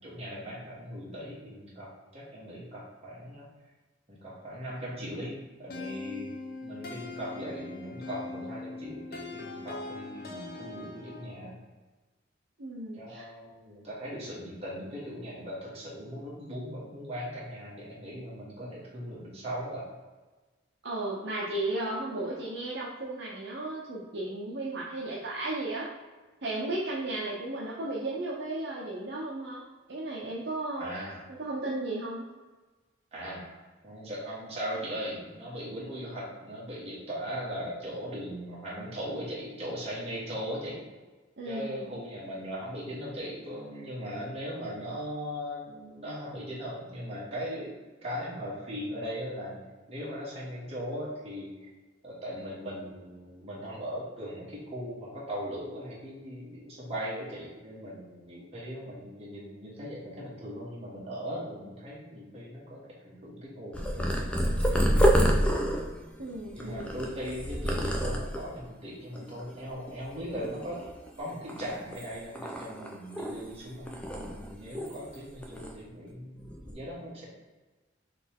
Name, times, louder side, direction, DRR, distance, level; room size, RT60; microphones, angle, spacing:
voice 1, 0.0-3.5 4.1-6.3 6.6-11.6 12.9-19.9 30.8-31.2 33.1-33.6 33.8-40.8 41.4-47.7 48.0-49.6 49.9-51.7 52.0-62.8 63.0-64.8 65.3-65.4 66.5-70.8 71.2-77.3, equal, 30° right, -7 dB, 1.5 m, -39 dB
sound 1, 5.7-11.5, left 3 dB, 50° left, 0.6 m, -41 dB
voice 2, 12.6-13.3 18.6-18.7 20.8-25.9 26.4-29.6 29.9-30.9 31.4-32.2 41.4-42.0 66.2-66.9, right 2 dB, 60° right, -4 dB, 0.6 m, -34 dB
Purr, 63.7-68.6 69.2-69.6 69.9-71.1 71.5-73.6 73.9-75.2 75.4-75.7 76.4-76.7, equal, 5° left, 0.4 m, -28 dB
4.0 x 3.0 x 3.6 m, 1.2 s
head